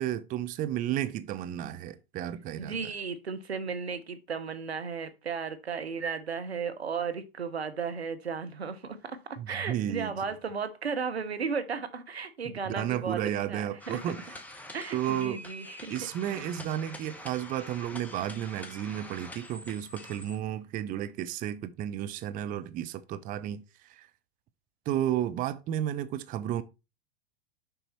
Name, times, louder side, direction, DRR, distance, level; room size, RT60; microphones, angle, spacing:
voice 1, 0.0-2.8 9.4-10.2 12.7-14.2 14.9-15.4 15.9-24.1 24.9-26.6, right 11 dB, 25° right, 0.6 m, -32 dB
voice 2, 2.6-14.0 14.7-15.9 16.2-16.5, right 5 dB, 85° right, 1.2 m, -35 dB
sound 1, 13.8-20.4, left 1 dB, 5° left, 1.5 m, -45 dB
6.9 x 5.5 x 4.3 m
hypercardioid pair, 100°, 31 cm